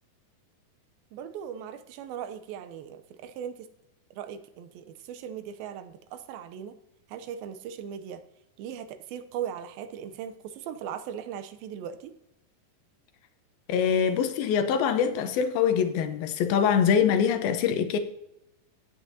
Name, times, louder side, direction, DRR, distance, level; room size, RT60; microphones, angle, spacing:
voice 1, 1.1-3.7 4.1-6.8 7.1-8.2 8.6-12.1, right 9 dB, 80° right, 2.6 m, -38 dB
voice 2, 13.7-18.0, left 7 dB, 85° left, 2.8 m, -24 dB
17.0 x 8.5 x 2.8 m
omnidirectional pair, 4.2 m